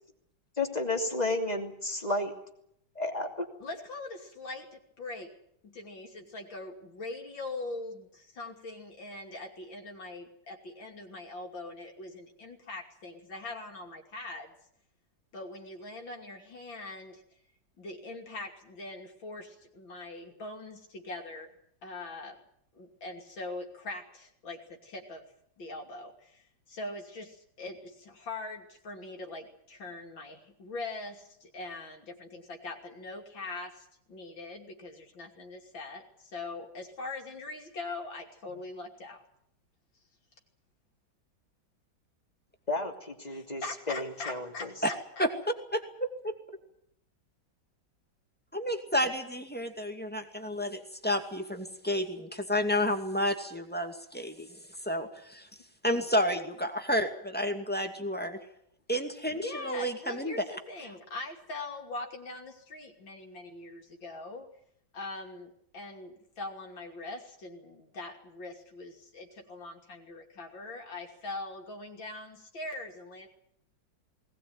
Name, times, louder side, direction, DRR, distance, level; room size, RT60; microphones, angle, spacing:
voice 1, 0.6-2.3 3.0-3.5 42.7-44.7, left 2 dB, 20° left, 3 dB, 2.9 m, -32 dB
voice 2, 3.6-5.3 5.6-14.5 15.3-17.2 17.8-21.5 21.8-22.4 22.7-25.2 25.6-39.2 43.3-45.3 58.2-58.3 59.3-64.5 64.9-73.3, left 2 dB, 75° left, 1 dB, 3.5 m, -42 dB
voice 3, 45.7-46.4 48.5-54.5 54.9-55.5 55.8-58.4 58.9-60.4, equal, 5° left, 5 dB, 2.3 m, -31 dB
20.0 x 19.5 x 9.5 m, 0.73 s
omnidirectional pair, 2.1 m